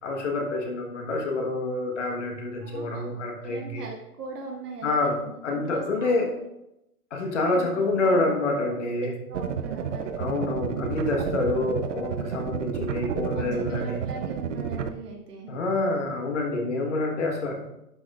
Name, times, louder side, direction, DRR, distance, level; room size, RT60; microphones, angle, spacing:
voice 1, 0.0-3.8 4.8-6.3 7.1-9.1 10.2-14.0 15.5-17.6, left 2 dB, 50° left, 1 dB, 1.4 m, -27 dB
voice 2, 2.6-3.1 3.4-6.4 7.5-8.4 8.7-10.2 11.6-11.8 13.3-15.5, right 3 dB, 75° right, -1 dB, 1.8 m, -40 dB
sound 1, 9.3-14.9, right 7 dB, 55° right, 0.6 m, -31 dB
11.0 x 6.1 x 2.4 m, 0.86 s
hypercardioid pair, 165°, 46 cm